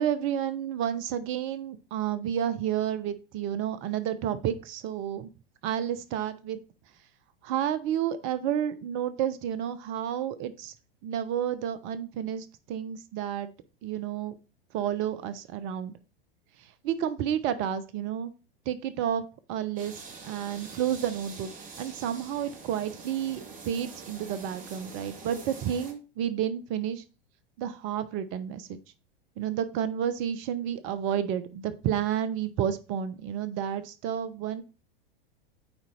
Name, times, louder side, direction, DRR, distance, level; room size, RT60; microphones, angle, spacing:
voice 1, 0.0-5.3 5.6-6.6 7.4-10.7 11.0-13.5 13.8-14.3 14.7-15.9 16.8-18.3 18.7-19.2 19.5-19.9 20.2-21.5 21.8-27.0 27.6-28.8 29.4-34.6, right 9 dB, 40° right, 13 dB, 1.0 m, -30 dB
sound 1, 19.8-25.9, right 4 dB, 25° right, 2.0 m, -45 dB
8.9 x 4.4 x 4.3 m, 0.32 s
hypercardioid pair, 95°, 29 cm